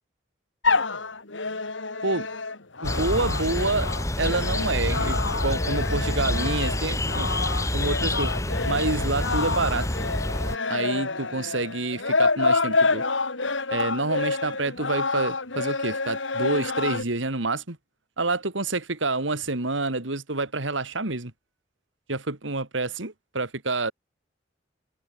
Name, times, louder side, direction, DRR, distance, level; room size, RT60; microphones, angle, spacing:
sound 1, 0.6-17.0, left 3 dB, 85° left, 3.2 m, -28 dB
sound 2, 2.8-10.6, left 1 dB, 15° left, 3.4 m, -27 dB
voice 1, 2.8-3.9 4.2-7.3 7.7-8.3 8.6-9.9 10.7-13.0 13.7-17.8 18.2-21.3 22.1-23.9, right 3 dB, 85° right, 2.6 m, -28 dB
head